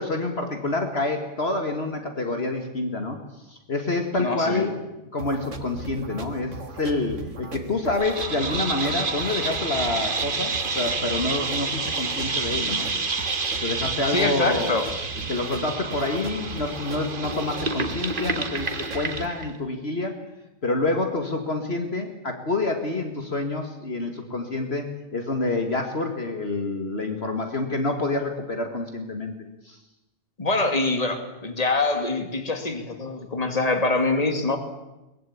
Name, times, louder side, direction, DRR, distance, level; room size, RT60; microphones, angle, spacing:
voice 1, 0.0-3.2 3.5-4.7 5.1-12.9 13.6-14.8 15.3-20.2 20.6-29.4 29.6-29.8, left 2 dB, 55° left, 5 dB, 2.3 m, -27 dB
voice 2, 4.2-4.7 12.7-12.8 14.1-14.9 30.4-34.6, left 2 dB, 30° left, 6 dB, 2.6 m, -24 dB
sound 1, 5.2-19.3, right 3 dB, 70° right, 2.1 m, -38 dB
sound 2, 8.0-19.5, right 4 dB, 45° right, 1.6 m, -29 dB
22.5 x 20.5 x 8.7 m, 0.99 s
omnidirectional pair, 1.3 m